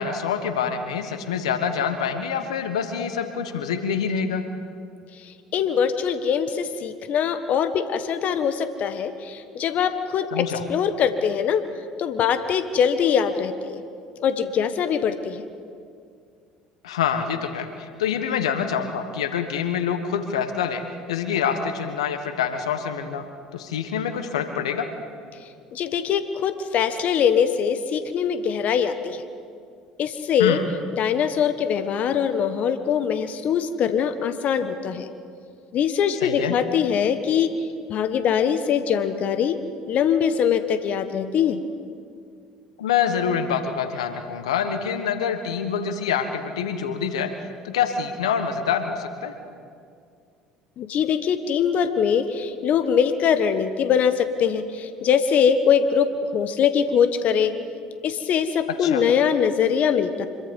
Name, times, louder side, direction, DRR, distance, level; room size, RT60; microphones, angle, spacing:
voice 1, 0.0-4.4 10.3-10.6 16.8-20.8 21.1-23.2 23.5-24.9 30.4-30.6 36.2-36.5 42.8-49.3 58.8-59.0, left 7 dB, 85° left, 8 dB, 1.4 m, -26 dB
voice 2, 5.2-10.4 10.7-11.6 12.0-13.8 14.2-15.4 25.7-29.2 30.0-30.6 30.9-35.1 35.7-37.5 37.9-39.6 39.9-41.6 50.8-57.5 58.0-60.3, left 7 dB, 55° left, 10 dB, 1.3 m, -22 dB
26.0 x 22.5 x 5.4 m, 2.3 s
hypercardioid pair, 70°, 3 cm